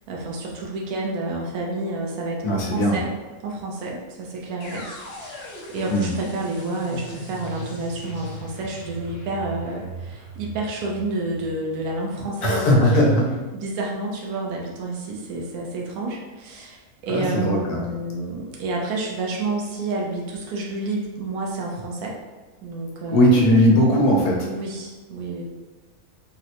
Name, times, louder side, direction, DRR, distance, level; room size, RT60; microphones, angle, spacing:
voice 1, 0.1-3.1 3.4-13.0 13.5-22.2 22.6-23.6 24.5-25.4, right 2 dB, 75° right, -2 dB, 1.1 m, -29 dB
voice 2, 2.4-3.0 5.9-6.1 12.4-13.3 17.1-17.9 23.1-24.5, equal, 90° left, -1 dB, 1.2 m, -18 dB
sound 1, 4.6-12.6, equal, 60° left, 0.6 m, -38 dB
3.7 x 2.1 x 2.8 m, 1.2 s
omnidirectional pair, 1.6 m